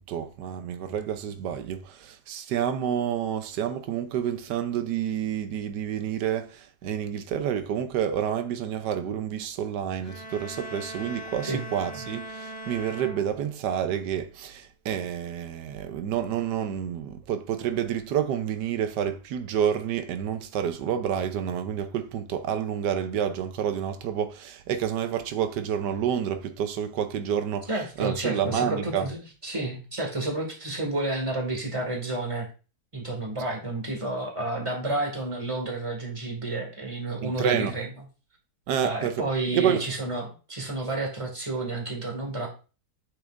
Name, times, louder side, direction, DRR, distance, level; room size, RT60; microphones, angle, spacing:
voice 1, 0.0-27.7 28.0-29.1 37.2-37.7 38.7-39.2 39.5-39.8, right 9 dB, 90° right, 1.3 m, -29 dB
sound 1, 10.0-13.8, right 1 dB, 15° left, 1.3 m, -40 dB
voice 2, 27.7-32.5 32.9-38.0 38.8-42.5, right 2 dB, 20° right, 2.1 m, -30 dB
8.7 x 6.2 x 2.5 m
omnidirectional pair, 1.7 m